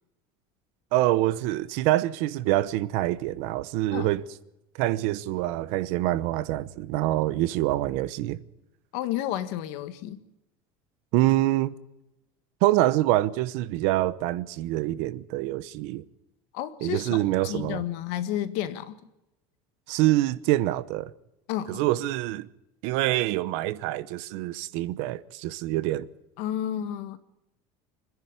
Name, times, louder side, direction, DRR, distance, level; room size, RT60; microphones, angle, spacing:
voice 1, 0.9-4.2 4.8-8.4 11.1-11.8 12.6-16.0 16.8-17.8 19.9-21.1 21.7-22.5 22.8-26.1, right 16 dB, 65° right, 1.0 m, -25 dB
voice 2, 8.9-10.2 16.5-19.0 21.5-21.8 26.4-27.2, left 12 dB, 65° left, 1.6 m, -31 dB
25.5 x 10.5 x 9.7 m
cardioid pair, 165°, 12 cm